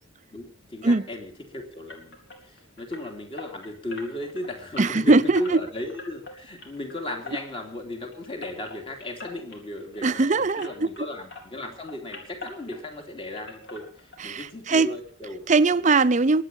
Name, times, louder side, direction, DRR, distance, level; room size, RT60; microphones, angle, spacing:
voice 1, 0.3-15.4, left 1 dB, 25° left, 3.0 m, -36 dB
sound 1, 1.9-11.0 11.3-13.1 13.3-14.5 14.7-14.8 15.3-15.4 15.7-15.8, left 2 dB, 60° left, 4.0 m, -44 dB
voice 2, 4.8-5.6 10.0-10.9 14.2-15.0 15.5-16.4, right 3 dB, 35° right, 0.6 m, -21 dB
22.5 x 9.2 x 5.5 m
head